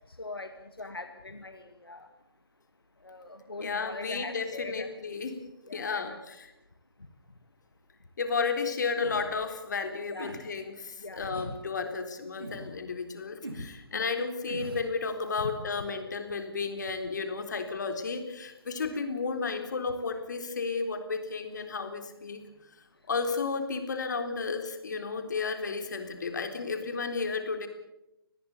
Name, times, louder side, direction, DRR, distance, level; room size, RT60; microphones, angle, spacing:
voice 1, 0.2-0.5 0.8-2.1 3.0-4.9 5.7-6.2 10.1-10.4 11.0-11.5 13.9-14.2 15.4-15.7 19.5-19.6 26.3-26.4, left 2 dB, 75° left, 7 dB, 2.0 m, -41 dB
voice 2, 3.6-5.3 5.7-6.1 8.2-22.4 23.1-27.7, left 4 dB, 50° left, 7 dB, 3.7 m, -33 dB
sound 1, 8.9-9.3 10.1-10.4 11.2-11.5 12.4-12.7 13.4-13.7 14.5-14.9, right 1 dB, 70° right, 7.6 m, -41 dB
24.0 x 20.0 x 7.0 m, 0.91 s
figure-of-eight pair, 140°, 13 cm